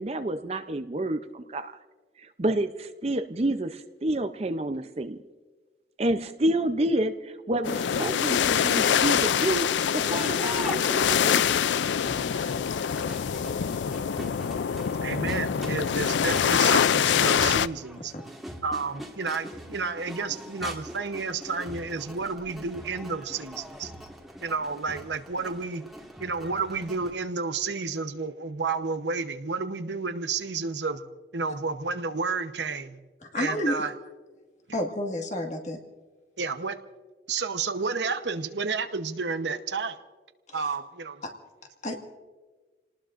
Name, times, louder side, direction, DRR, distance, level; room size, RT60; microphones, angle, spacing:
voice 1, 0.0-1.8 2.2-5.2 6.0-11.5, right 1 dB, 35° right, 9 dB, 0.6 m, -29 dB
sound 1, 7.6-17.7, left 8 dB, 85° left, 0.4 m, -25 dB
Crowd, 9.3-27.1, equal, ahead, 1.7 m, -43 dB
voice 2, 12.2-12.5 15.0-18.1 18.6-23.9 24.4-25.8 26.2-31.0 31.3-33.0 33.4-33.9 36.4-36.8 37.3-40.0 40.5-41.2, right 4 dB, 80° right, 9 dB, 1.0 m, -31 dB
voice 3, 33.2-33.8 34.7-35.8 40.5-40.6 41.2-41.3 41.8-42.0, left 1 dB, 40° left, 3 dB, 1.8 m, -30 dB
29.5 x 19.0 x 2.6 m, 1.3 s
head